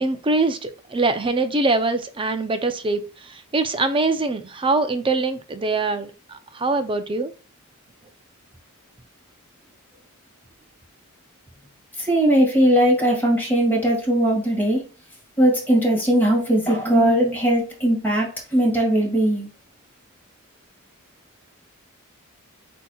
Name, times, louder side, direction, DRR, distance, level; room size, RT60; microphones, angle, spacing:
voice 1, 0.0-3.0 3.3-7.3, right 3 dB, 25° right, 9 dB, 0.5 m, -23 dB
voice 2, 12.0-14.8 15.4-19.5, right 1 dB, 10° left, -2 dB, 2.0 m, -19 dB
8.0 x 2.9 x 2.3 m, 0.35 s
head